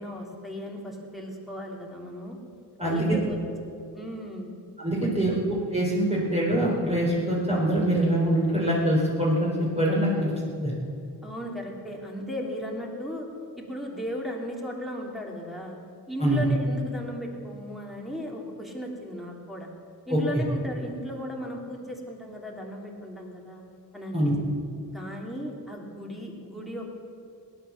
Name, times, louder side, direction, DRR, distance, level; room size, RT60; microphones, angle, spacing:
voice 1, 0.0-2.4 2.8-3.4 3.9-4.5 5.0-5.4 11.2-13.3 13.6-15.7 16.1-19.7 20.1-23.6 23.9-24.5 24.9-26.8, equal, ahead, -2 dB, 3.1 m, -36 dB
voice 2, 4.8-10.3 10.6-10.7 16.2-16.4 20.1-20.4 24.1-24.3, right 1 dB, 15° right, -6 dB, 4.0 m, -24 dB
18.5 x 10.5 x 7.2 m, 2.4 s
cardioid pair, 90°, 38 cm